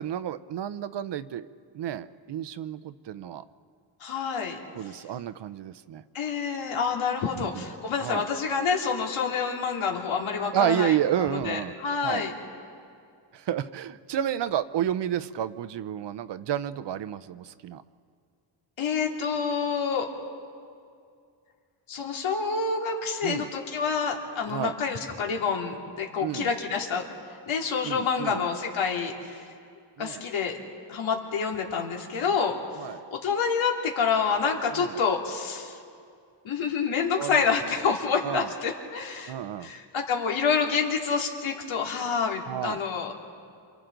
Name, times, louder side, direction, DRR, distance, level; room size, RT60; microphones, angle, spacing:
voice 1, 0.0-1.5 1.7-3.4 4.7-6.0 7.3-7.6 8.0-8.2 10.5-11.7 12.0-12.3 13.3-17.8 23.2-23.5 24.5-24.7 26.2-26.5 27.8-28.4 30.0-30.2 32.8-33.0 34.7-34.9 37.2-37.4 38.2-38.5 39.3-39.7 42.5-42.8, right 10 dB, 65° right, 14 dB, 0.7 m, -30 dB
voice 2, 4.0-4.6 6.1-10.9 11.3-12.3 18.8-20.1 21.9-27.1 27.5-29.4 30.0-30.6 30.9-32.6 33.2-35.8 36.4-39.3 39.6-43.3, left 5 dB, 90° left, 1 dB, 2.6 m, -28 dB
28.0 x 27.0 x 3.9 m, 2.3 s
wide cardioid pair, 140°, 46 cm